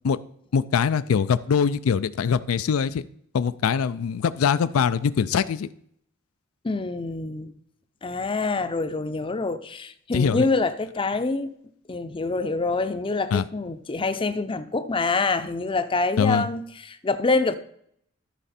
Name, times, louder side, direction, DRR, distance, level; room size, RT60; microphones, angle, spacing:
voice 1, 0.5-3.0 3.3-5.7 10.1-10.5 13.3-13.4 16.2-16.5, left 6 dB, 85° left, 0.4 m, -23 dB
voice 2, 6.6-7.5 8.0-11.5 11.9-17.6, left 3 dB, 25° left, 0.5 m, -26 dB
13.5 x 4.9 x 4.2 m
head